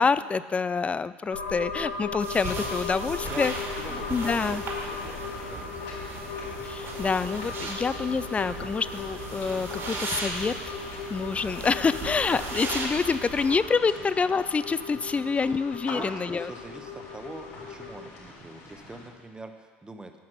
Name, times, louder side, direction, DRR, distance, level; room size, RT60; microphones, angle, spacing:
voice 1, 0.0-3.5 4.1-4.6 6.6-10.7 11.1-16.5, left 5 dB, 20° left, 16 dB, 0.4 m, -27 dB
sound 1, 1.3-18.1, left 5 dB, 85° left, 1.0 m, -38 dB
sound 2, 2.2-13.6, right 3 dB, 50° right, 2.4 m, -37 dB
sound 3, 3.1-19.1, left 2 dB, 65° left, 3.1 m, -43 dB
voice 2, 3.8-6.0 15.2-15.3 15.9-16.1 16.4-20.1, right 2 dB, 15° right, 6 dB, 1.0 m, -44 dB
9.5 x 5.8 x 6.4 m, 1.5 s
hypercardioid pair, 75°, 6 cm